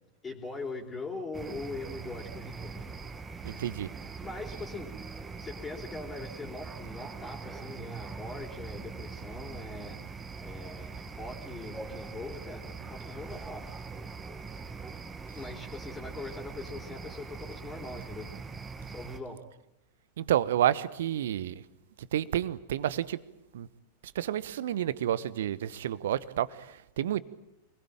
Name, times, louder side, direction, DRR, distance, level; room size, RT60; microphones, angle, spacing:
voice 1, 0.2-2.9 4.2-4.9 5.4-10.0 10.4-13.7 15.3-18.3 18.8-19.4, left 2 dB, 15° left, 3 dB, 4.1 m, -41 dB
sound 1, 1.3-19.2, right 4 dB, 15° right, 2.0 m, -42 dB
voice 2, 3.4-3.9 20.2-21.6 22.1-23.2 23.5-23.7 24.1-26.5 27.0-27.2, right 11 dB, 60° right, 17 dB, 1.2 m, -29 dB
27.5 x 21.5 x 9.0 m, 0.85 s
figure-of-eight pair, 90°, 0 cm